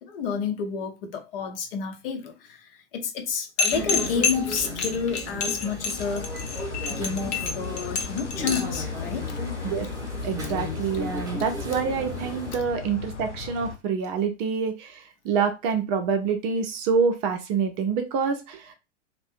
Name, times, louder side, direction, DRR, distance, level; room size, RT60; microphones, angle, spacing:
voice 1, 0.0-6.3 6.9-9.4, left 6 dB, 55° left, 0.7 m, -30 dB
sound 1, 3.6-8.8, left 5 dB, 20° left, 0.4 m, -27 dB
sound 2, 3.7-12.6, equal, 10° right, 0.8 m, -35 dB
sound 3, 6.0-13.8, left 6 dB, 90° left, 0.5 m, -36 dB
voice 2, 10.2-18.7, right 6 dB, 35° right, 0.5 m, -26 dB
2.5 x 2.1 x 2.5 m
figure-of-eight pair, 95°, 35 cm